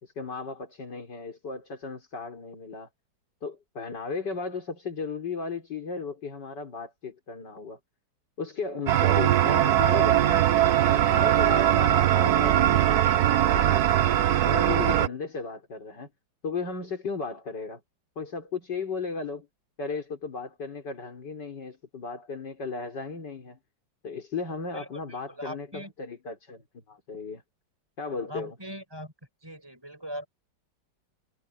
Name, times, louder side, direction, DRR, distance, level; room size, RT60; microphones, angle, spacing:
voice 1, 0.0-2.9 3.4-7.8 8.4-13.9 14.4-16.1 16.4-17.8 18.2-19.5 19.8-23.6 24.0-26.6 26.9-27.4 28.0-28.5, left 4 dB, 60° left, 4.6 m, -35 dB
sound 1, 8.9-15.1, right 12 dB, 60° right, 1.2 m, -21 dB
voice 2, 24.7-25.9 28.3-29.1 29.4-30.3, equal, 10° right, 5.8 m, -40 dB
omnidirectional pair, 2.1 m